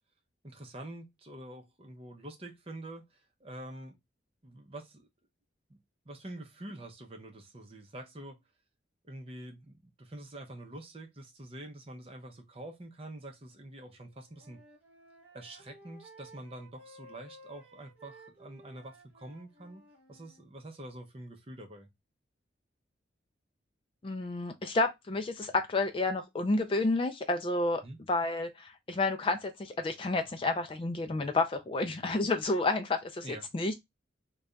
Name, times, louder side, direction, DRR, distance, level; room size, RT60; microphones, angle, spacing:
voice 1, 0.4-4.0 4.4-5.1 5.7-5.8 6.1-8.4 9.1-14.6 15.3-21.9 27.8-28.0 33.2-33.5, right 1 dB, 30° right, 0.7 m, -46 dB
Wind instrument woodwind instrument, 14.0-20.4, right 1 dB, 10° right, 1.5 m, -56 dB
voice 2, 24.0-27.8 28.1-33.3 33.5-33.8, left 2 dB, 30° left, 0.3 m, -30 dB
3.3 x 2.3 x 3.7 m
head